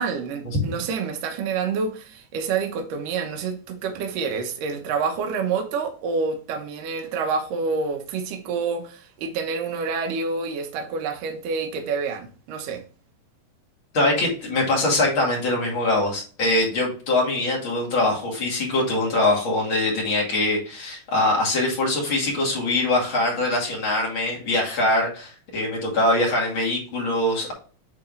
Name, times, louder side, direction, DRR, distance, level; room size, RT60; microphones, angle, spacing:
voice 1, 0.0-12.8, right 5 dB, 75° right, 2.6 m, -28 dB
voice 2, 13.9-27.5, left 2 dB, 40° left, 2.9 m, -23 dB
8.8 x 3.7 x 3.8 m
omnidirectional pair, 3.9 m